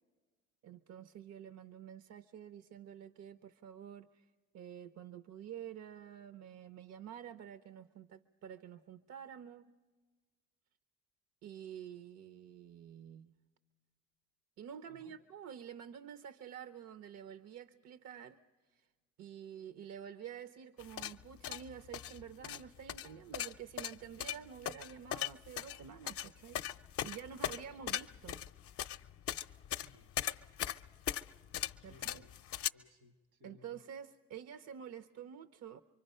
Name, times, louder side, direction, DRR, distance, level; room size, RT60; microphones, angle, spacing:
voice 1, 0.6-4.2 4.5-9.7 11.4-13.3 14.6-18.4 18.7-18.9 19.2-26.6 27.0-28.4 31.8-32.2 33.4-35.8, right 9 dB, 60° right, 0.7 m, -49 dB
voice 2, 14.9-15.2 29.8-30.1 31.8-32.3 32.7-33.8, left 3 dB, 85° right, 1.8 m, -61 dB
sound 1, 20.8-32.7, left 11 dB, 55° left, 0.6 m, -39 dB
25.5 x 23.5 x 5.5 m
cardioid pair, 90°, 29 cm